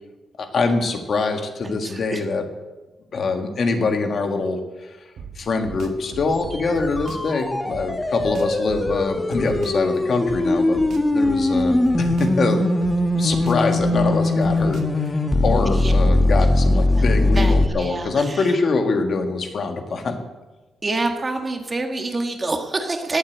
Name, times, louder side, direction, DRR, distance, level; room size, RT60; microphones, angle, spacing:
voice 1, 0.4-2.5 3.1-5.0 5.3-10.8 11.1-12.7 13.1-20.2, left 3 dB, 45° left, 5 dB, 1.7 m, -24 dB
voice 2, 1.8-2.2 15.7-15.9 16.7-17.0 17.4-18.5 20.8-23.2, right 2 dB, 20° right, 5 dB, 1.4 m, -27 dB
sound 1, 5.2-7.3 7.7-9.9 10.3-12.5 12.8-15.1, right 5 dB, 65° right, 1.7 m, -37 dB
sound 2, 6.3-17.7, left 2 dB, 15° left, 1.0 m, -20 dB
18.5 x 8.0 x 7.9 m, 1.2 s
wide cardioid pair, 165°, 0 cm